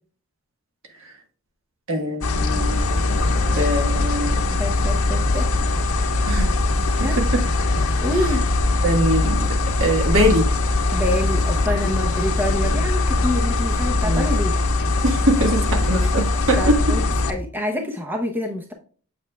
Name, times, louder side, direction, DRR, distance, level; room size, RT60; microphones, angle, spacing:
voice 1, 1.9-2.8 3.5-4.3 6.3-6.5 7.0-7.4 8.8-10.5 14.0-14.3 15.0-16.8, equal, 65° right, 3 dB, 1.4 m, -22 dB
sound 1, 2.2-17.3, left 2 dB, 75° left, 1.0 m, -21 dB
voice 2, 4.5-5.5 7.0-7.2 8.0-8.4 10.9-14.5 16.6-18.7, left 1 dB, 10° right, 2 dB, 0.7 m, -26 dB
7.3 x 7.1 x 2.2 m, 0.42 s
head